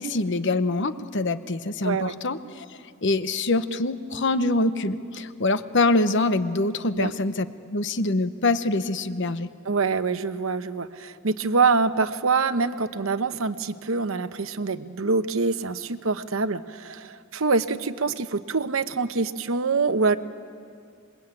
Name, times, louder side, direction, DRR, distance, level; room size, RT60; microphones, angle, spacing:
voice 1, 0.0-2.7 3.0-7.5 7.7-9.5, left 2 dB, 60° left, 11 dB, 1.0 m, -24 dB
voice 2, 1.8-2.1 6.9-7.1 9.6-20.2, right 4 dB, 70° right, 11 dB, 0.9 m, -25 dB
26.5 x 22.0 x 9.0 m, 2.2 s
head